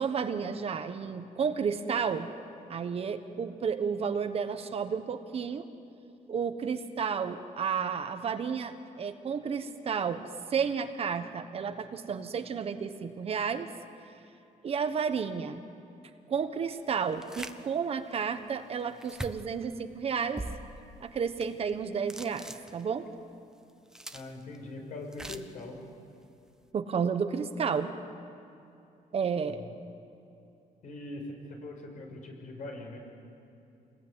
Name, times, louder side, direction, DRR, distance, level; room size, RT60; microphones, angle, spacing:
voice 1, 0.0-2.3 2.7-5.7 6.3-13.7 14.6-15.6 16.3-20.4 21.0-23.1 26.7-27.9 29.1-29.6, right 6 dB, 45° right, 8 dB, 1.3 m, -32 dB
sound 1, 17.2-17.6 18.1-18.2 19.0-19.6 20.4-20.9 21.4-21.7 22.1-23.1 23.7-24.6 25.1-25.6, right 1 dB, 5° right, 0.9 m, -41 dB
voice 2, 24.1-25.8 29.5-29.7 30.8-33.0, left 2 dB, 60° left, 1 dB, 6.3 m, -42 dB
28.5 x 21.0 x 9.9 m, 2.7 s
cardioid pair, 160°, 15 cm